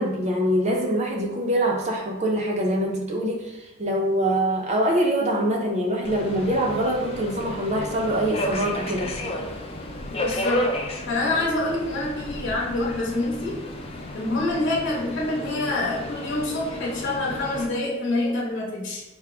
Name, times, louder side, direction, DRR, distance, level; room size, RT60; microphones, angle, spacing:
voice 1, 0.0-9.1, right 1 dB, 30° right, -1 dB, 0.4 m, -24 dB
Subway metro underground, 6.0-17.7, left 1 dB, 30° left, 0.4 m, -32 dB
voice 2, 10.1-10.7 11.1-13.6 14.1-19.0, left 2 dB, 60° left, -5 dB, 0.9 m, -26 dB
4.6 x 2.1 x 3.4 m, 0.96 s
head